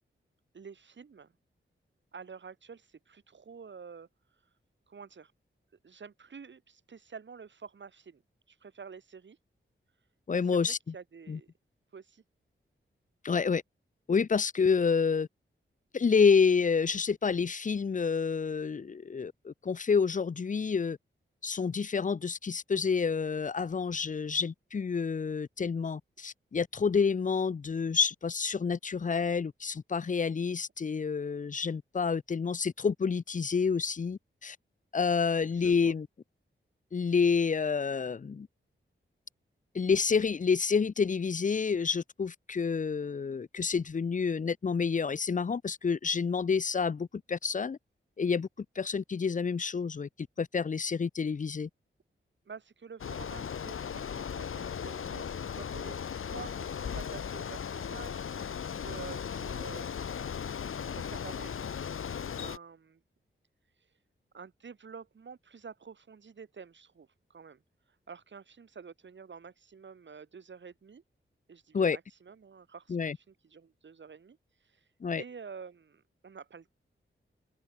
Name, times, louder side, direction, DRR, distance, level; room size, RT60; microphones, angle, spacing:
voice 1, 0.5-1.3 2.1-4.1 4.9-5.3 5.8-8.2 8.5-9.4 10.3-11.5 11.9-12.2 35.5-35.9 52.5-59.9 60.6-61.8 62.4-63.0 64.3-67.6 68.1-71.0 71.5-74.4 74.6-74.9 75.2-76.7, right 6 dB, 65° right, 5.2 m, -49 dB
voice 2, 10.3-10.8 11.3-11.4 13.2-13.6 14.1-15.3 15.9-21.0 21.4-34.6 34.9-36.1 36.9-38.5 39.7-47.8 48.2-48.5 48.8-50.1 50.4-51.7 71.7-72.0 72.9-73.2 75.0-75.2, left 5 dB, 40° left, 0.8 m, -28 dB
Bicycle, 53.0-62.6, left 7 dB, 90° left, 1.6 m, -37 dB
wide cardioid pair, 165°, 21 cm